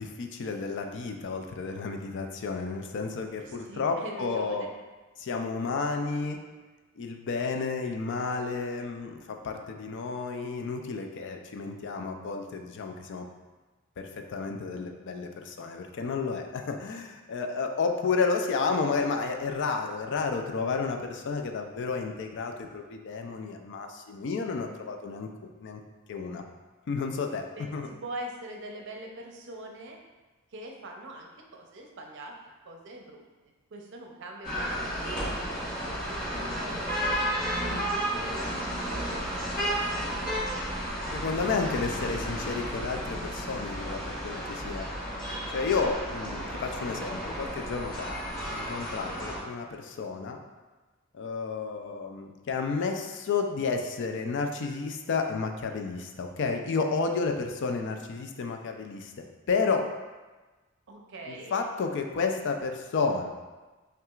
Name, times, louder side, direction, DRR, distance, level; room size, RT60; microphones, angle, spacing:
voice 1, 0.0-4.7 5.2-6.4 7.0-13.3 14.0-25.8 26.1-26.4 26.9-27.5 27.7-27.9 41.1-44.9 45.5-48.2 48.5-50.4 51.1-59.1 59.5-59.9 61.3-63.3, left 4 dB, 60° left, 5 dB, 0.4 m, -31 dB
voice 2, 3.4-4.7 27.6-30.0 30.5-36.7 37.0-40.4 60.9-61.6, right 1 dB, 60° right, 2 dB, 0.5 m, -43 dB
sound 1, 34.4-49.4, equal, 40° left, 1.3 m, -32 dB
5.7 x 2.4 x 2.4 m, 1.2 s
head